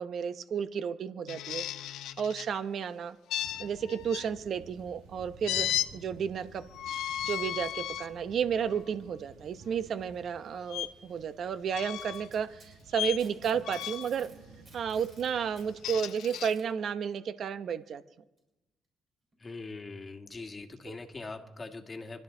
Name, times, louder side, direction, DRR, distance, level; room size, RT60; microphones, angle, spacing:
voice 1, 0.0-3.2 3.6-6.6 7.2-14.3 14.7-18.0 20.9-21.0, right 7 dB, 60° right, 12 dB, 0.9 m, -32 dB
sound 1, 1.3-2.5 3.3-4.3 5.4-5.9 6.7-8.1 8.7-8.9 10.7-10.9 11.7-12.3 12.9-13.2 13.6-14.1 15.6-16.5, left 12 dB, 85° left, 0.6 m, -34 dB
sound 2, 3.4-16.0, right 4 dB, 90° right, 1.5 m, -54 dB
Packing tape duct tape, 12.0-14.4 14.7-16.6 17.7-17.8 18.4-18.5 19.3-19.4, right 3 dB, 40° right, 6.7 m, -56 dB
voice 2, 19.4-22.2, left 3 dB, 25° left, 5 dB, 1.8 m, -42 dB
26.0 x 12.0 x 3.9 m, 1.0 s
cardioid pair, 90°, 0 cm